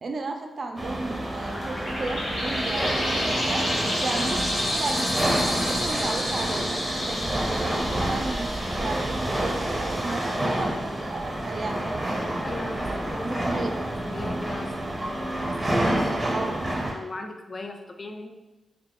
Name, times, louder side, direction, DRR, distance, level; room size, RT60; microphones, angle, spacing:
voice 1, 0.0-3.7 4.0-6.7 7.0-8.5 8.8-11.8 13.2-13.7 16.3-16.6, right 3 dB, 60° right, 4 dB, 0.3 m, -34 dB
sound 1, 0.8-16.9, right 1 dB, 25° right, 0.6 m, -28 dB
sound 2, 1.2-10.3, left 1 dB, 90° left, 1.3 m, -31 dB
sound 3, 2.2-2.7 3.0-3.1 3.4-4.8 5.2-5.7 5.9-6.1 6.4-9.9 10.2-10.4 10.7-11.2 11.5-11.6 11.9-13.1, right 1 dB, 70° left, 1.0 m, -41 dB
voice 2, 12.4-14.7 15.0-16.5 16.9-18.4, left 2 dB, 40° left, 5 dB, 0.3 m, -38 dB
2.3 x 2.0 x 3.6 m, 1.1 s
cardioid pair, 65°, 0 cm